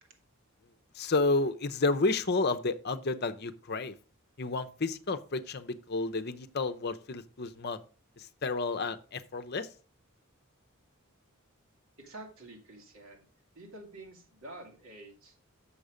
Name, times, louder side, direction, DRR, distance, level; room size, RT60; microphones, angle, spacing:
voice 1, 0.9-3.9 4.4-7.8 8.2-9.7, left 3 dB, 50° left, 9 dB, 0.7 m, -31 dB
voice 2, 12.0-13.3 13.5-15.4, right 2 dB, 65° right, 1 dB, 2.5 m, -48 dB
7.2 x 6.9 x 5.0 m, 0.37 s
head